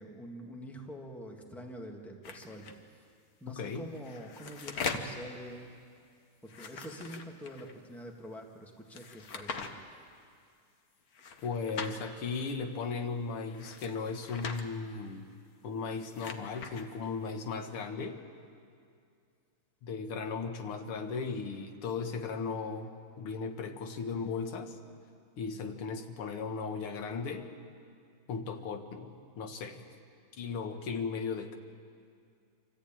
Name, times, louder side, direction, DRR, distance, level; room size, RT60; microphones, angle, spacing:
voice 1, 0.0-3.1 3.4-5.8 6.4-9.8, equal, ahead, 1 dB, 1.6 m, -45 dB
sound 1, 2.2-2.7 3.9-5.2 6.4-7.7 8.9-9.7 11.1-12.0 13.5-14.6 15.8-16.9, left 5 dB, 50° left, 1.4 m, -41 dB
voice 2, 11.4-15.3 15.6-18.2 19.8-22.9 23.2-24.8 25.4-27.5 28.3-29.9 30.4-31.6, left 5 dB, 90° left, 6 dB, 2.2 m, -36 dB
26.0 x 14.5 x 8.8 m, 2.3 s
omnidirectional pair, 2.3 m